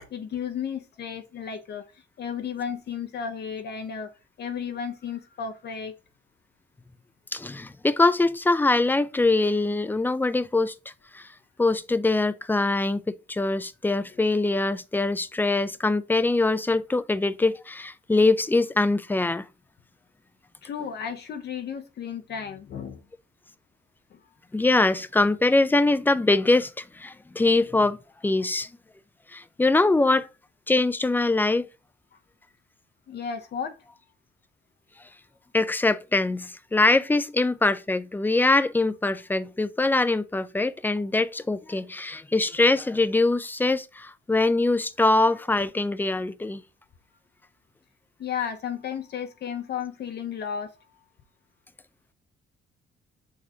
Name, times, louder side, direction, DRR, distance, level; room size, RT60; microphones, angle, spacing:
voice 1, 0.1-1.8 2.2-4.1 4.4-5.9 20.6-23.0 33.1-33.7 48.2-50.7, left 7 dB, 55° left, 0.6 m, -33 dB
voice 2, 7.3-10.7 11.1-11.3 11.6-19.5 24.5-28.0 28.2-28.7 29.3-30.3 30.7-31.7 35.5-46.6, left 2 dB, 10° left, 0.3 m, -23 dB
6.0 x 3.1 x 2.7 m
cardioid pair, 90°, 20 cm